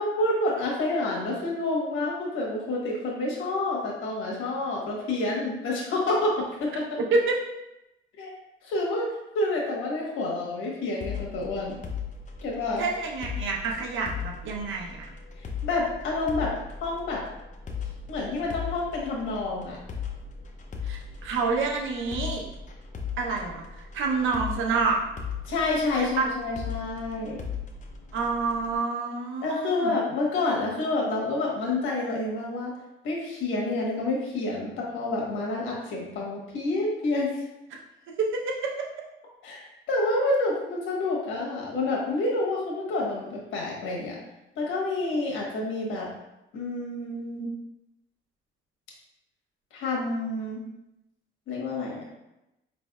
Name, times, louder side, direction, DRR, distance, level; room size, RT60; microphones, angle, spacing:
voice 1, 0.0-6.8 8.2-8.3 8.6-9.1 9.3-11.8 12.4-12.8 15.6-16.5 16.8-17.2 18.1-19.8 25.5-27.4 29.4-32.7 33.0-37.4 39.4-44.2 44.6-46.1 46.5-47.5 49.7-50.6 51.5-52.0, left 2 dB, 85° left, -2 dB, 1.2 m, -28 dB
voice 2, 7.0-7.4 12.8-15.1 20.8-22.4 23.2-25.0 26.0-26.1 28.1-30.0 37.7-37.8 38.2-38.9, right 4 dB, 80° right, 0 dB, 0.8 m, -28 dB
sound 1, 11.0-28.8, left 6 dB, 40° left, 0.6 m, -38 dB
5.1 x 3.3 x 2.3 m, 0.91 s
cardioid pair, 90°, 20 cm